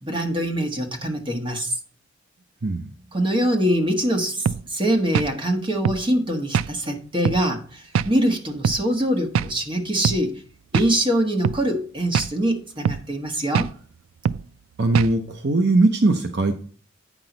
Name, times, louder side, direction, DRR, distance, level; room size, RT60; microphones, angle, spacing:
voice 1, 0.0-1.7 3.1-10.4 10.7-13.7, right 1 dB, 25° right, 1.4 m, -23 dB
sound 1, 4.5-4.6 5.1-5.3 5.9-6.0 6.5-6.7 7.3-7.4 8.0-8.1 8.6-8.8 9.4-9.5 10.0-10.2 10.7-10.9 11.4-11.6 12.1-12.3 12.9-13.1 13.5-13.7 14.3-14.4 15.0-15.2, right 7 dB, 80° right, 0.4 m, -23 dB
voice 2, 14.8-16.5, right 2 dB, 55° right, 0.7 m, -20 dB
8.9 x 6.1 x 3.9 m
head